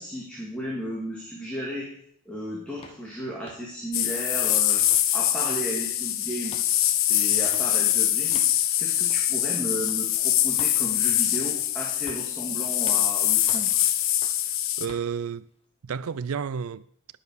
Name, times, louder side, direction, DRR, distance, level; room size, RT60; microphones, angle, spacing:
voice 1, 0.0-1.9 2.2-4.8 5.1-6.7 7.1-8.5 8.8-13.8, right 1 dB, 5° left, 2.8 m, -34 dB
sound 1, 2.8-3.0 3.4-3.7 4.1-4.6 4.9-5.1 5.4-6.0 6.4-6.7 7.4-7.7 8.3-8.5 9.1-9.3 9.9-10.0 10.6-10.8 11.3-11.6 12.1-12.3 12.8-13.0 13.5-13.7 14.2-14.4 14.9-15.1, left 2 dB, 25° left, 1.4 m, -46 dB
sound 2, 3.9-14.9, left 12 dB, 70° left, 1.0 m, -24 dB
voice 2, 14.5-15.5 15.8-16.8, right 6 dB, 85° right, 0.4 m, -31 dB
19.0 x 7.0 x 6.7 m
head